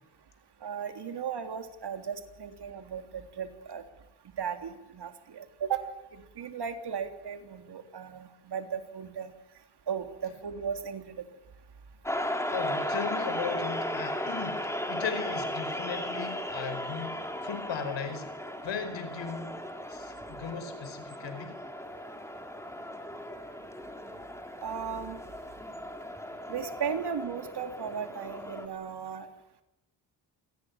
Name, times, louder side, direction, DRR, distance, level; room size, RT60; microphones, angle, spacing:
voice 1, 0.6-3.8 4.4-9.3 9.9-11.2 24.6-25.2 26.5-29.3, right 7 dB, 60° right, 6 dB, 3.4 m, -36 dB
sound 1, 12.0-28.7, left 1 dB, 5° left, 3.7 m, -36 dB
voice 2, 12.5-18.3 18.6-19.6 19.9-21.6, left 6 dB, 75° left, 10 dB, 4.8 m, -37 dB
27.5 x 19.0 x 9.7 m, 0.93 s
cardioid pair, 105°, 45 cm